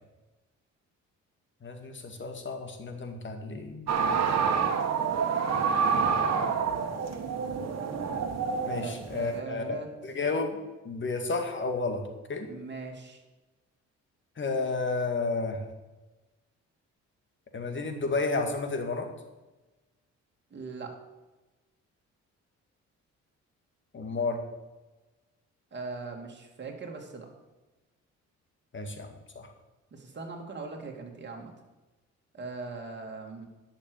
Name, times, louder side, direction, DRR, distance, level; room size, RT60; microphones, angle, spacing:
voice 1, 1.6-4.0 4.4-4.7 6.1-6.7 8.7-9.8 10.0-10.6 10.8-12.5 14.4-15.6 17.5-19.1 23.9-24.4 28.7-29.1 29.4-29.5, left 3 dB, 40° left, 5 dB, 2.1 m, -32 dB
sound 1, 3.9-9.4, right 6 dB, 60° right, 1.6 m, -27 dB
voice 2, 8.8-9.9 12.5-13.2 20.5-21.0 25.7-27.3 29.9-31.5 32.3-33.5, right 3 dB, 35° right, 1 dB, 2.7 m, -40 dB
10.5 x 6.8 x 7.1 m, 1.1 s
cardioid pair, 90°, 30 cm